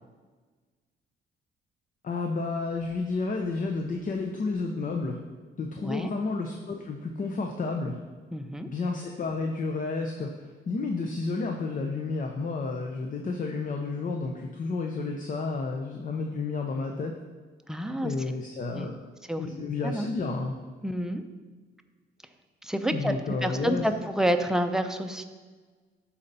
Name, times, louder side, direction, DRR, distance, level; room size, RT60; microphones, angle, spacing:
voice 1, 2.0-5.2 5.6-8.0 8.7-17.1 18.0-18.9 19.4-20.6 22.9-23.9, left 3 dB, 40° left, 2 dB, 0.8 m, -31 dB
voice 2, 8.3-8.7 17.7-18.1 18.7-18.9 19.3-19.4 19.8-20.1 20.8-21.2 22.6-23.1 23.4-25.2, right 1 dB, 5° right, 6 dB, 0.6 m, -28 dB
12.0 x 4.3 x 4.2 m, 1.4 s
cardioid pair, 90°, 20 cm